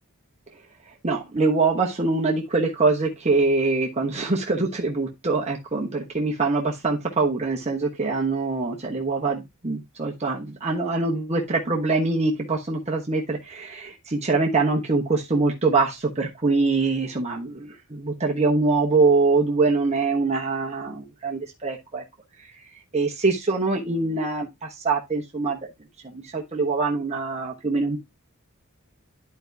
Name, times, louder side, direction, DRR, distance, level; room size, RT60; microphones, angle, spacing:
voice 1, 0.9-22.0 22.4-22.6 22.9-25.6 26.0-28.0, right 3 dB, 30° right, 1.0 m, -24 dB
11.5 x 4.6 x 2.7 m
head